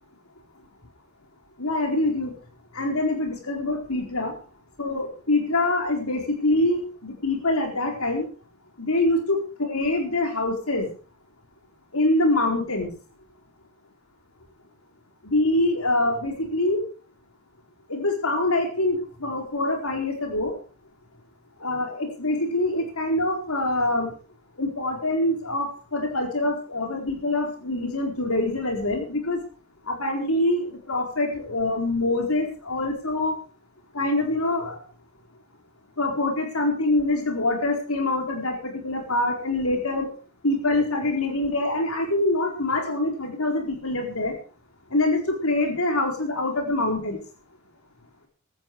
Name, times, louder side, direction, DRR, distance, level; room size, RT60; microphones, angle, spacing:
voice 1, 1.6-2.3 2.7-4.4 4.8-8.3 8.8-10.9 11.9-12.9 15.2-16.8 17.9-20.5 21.6-24.1 24.6-29.4 29.9-33.4 33.9-34.8 36.0-40.1 40.4-44.3 44.9-47.2, left 2 dB, 70° left, 4 dB, 4.4 m, -25 dB
16.0 x 13.0 x 4.8 m, 0.37 s
head